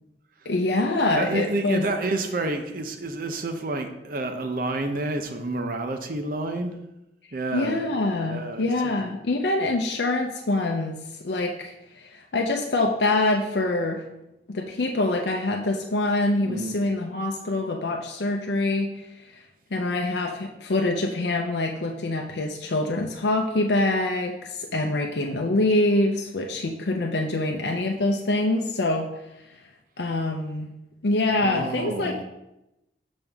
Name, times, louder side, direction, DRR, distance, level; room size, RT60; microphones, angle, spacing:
voice 1, 0.5-1.8 7.5-11.0 11.2-14.0 14.5-18.9 19.2-19.4 19.7-29.1 30.0-30.7 31.0-32.2, left 2 dB, 70° left, 1 dB, 0.6 m, -25 dB
voice 2, 1.2-6.7 7.3-7.8 8.3-8.9 16.4-16.8 31.4-32.2, right 2 dB, 55° right, 7 dB, 0.6 m, -29 dB
7.1 x 5.3 x 3.5 m, 0.91 s
head